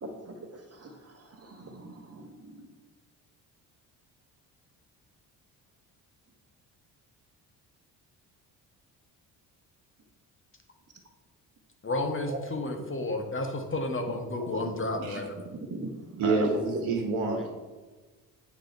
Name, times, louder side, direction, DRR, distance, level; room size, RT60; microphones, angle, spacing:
voice 1, 0.0-2.7 12.3-12.4 14.1-14.2 14.5-14.7 15.0-16.8, right 2 dB, 30° right, 4 dB, 1.2 m, -39 dB
voice 2, 11.8-15.4, left 2 dB, 25° left, 4 dB, 0.9 m, -31 dB
voice 3, 16.2-17.5, right 3 dB, 70° right, 2 dB, 1.4 m, -27 dB
8.6 x 3.0 x 4.5 m, 1.3 s
hypercardioid pair, 45°, 49 cm